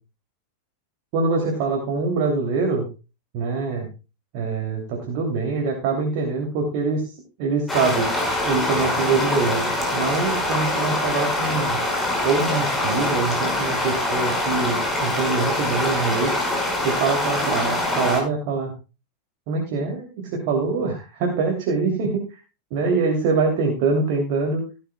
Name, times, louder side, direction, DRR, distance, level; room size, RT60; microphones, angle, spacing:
voice 1, 1.1-2.9 3.3-3.9 4.3-8.1 8.4-11.8 12.2-16.4 16.8-18.7 19.5-22.2 22.7-24.6, right 4 dB, 45° right, 2 dB, 2.9 m, -24 dB
sound 1, 7.7-18.2, left 1 dB, 10° left, 5.4 m, -24 dB
17.0 x 11.0 x 2.3 m, 0.30 s
figure-of-eight pair, 90°, 0 cm